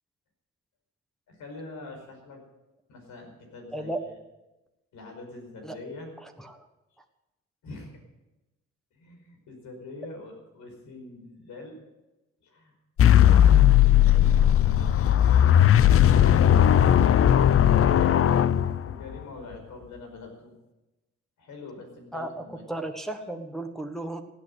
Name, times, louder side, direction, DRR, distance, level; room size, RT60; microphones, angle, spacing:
voice 1, 1.3-2.4 2.9-4.2 4.9-6.1 7.6-8.0 8.9-11.8 12.4-12.8 13.1-15.7 18.9-20.5 21.4-22.7, left 3 dB, 75° left, 3 dB, 5.2 m, -44 dB
voice 2, 3.7-4.1 5.6-5.8 6.2-6.7 17.7-17.9 22.1-24.2, right 1 dB, ahead, 4 dB, 1.3 m, -35 dB
sound 1, 13.0-19.2, left 10 dB, 50° left, 0.6 m, -18 dB
16.5 x 8.7 x 8.0 m, 1.0 s
cardioid pair, 90°, 30 cm